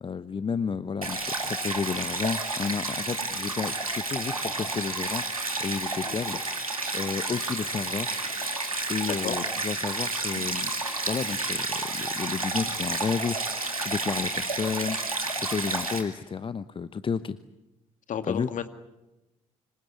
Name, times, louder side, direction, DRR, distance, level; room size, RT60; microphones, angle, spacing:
voice 1, 0.0-5.2 5.6-6.4 6.9-8.1 8.9-10.7 11.1-17.4 18.3-18.5, left 6 dB, 30° left, 15 dB, 0.9 m, -32 dB
Stream, 1.0-16.0, right 2 dB, 90° right, 2.4 m, -31 dB
voice 2, 6.0-6.4 9.0-9.4 18.1-18.7, left 8 dB, 45° left, 10 dB, 2.1 m, -33 dB
26.0 x 25.0 x 8.5 m, 1.0 s
figure-of-eight pair, 50°, 18 cm